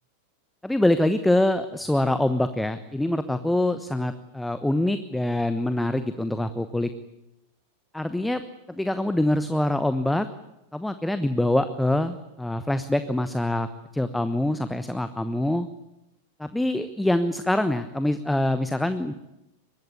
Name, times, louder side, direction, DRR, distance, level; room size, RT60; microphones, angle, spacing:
voice 1, 0.6-6.9 7.9-8.4 8.7-10.3 10.7-13.7 13.9-15.7 16.4-19.1, left 1 dB, 5° left, 11 dB, 1.1 m, -24 dB
23.0 x 20.5 x 9.7 m, 0.93 s
figure-of-eight pair, 90°, 0 cm